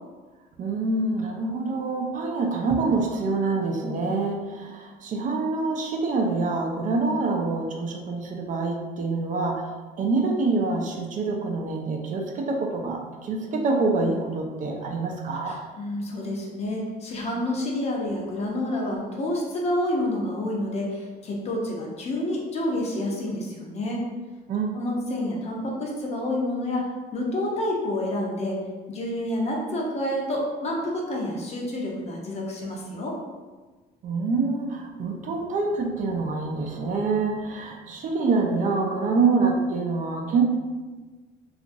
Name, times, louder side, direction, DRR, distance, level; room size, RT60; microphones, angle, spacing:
voice 1, 0.6-9.6 10.0-15.6 24.5-24.7 34.0-40.4, right 3 dB, 50° right, 2 dB, 0.5 m, -26 dB
voice 2, 15.4-24.1 24.7-26.9 27.1-28.6 28.9-33.2, left 1 dB, 40° left, -1 dB, 0.7 m, -28 dB
2.8 x 2.4 x 2.6 m, 1.3 s
cardioid pair, 110°, 17 cm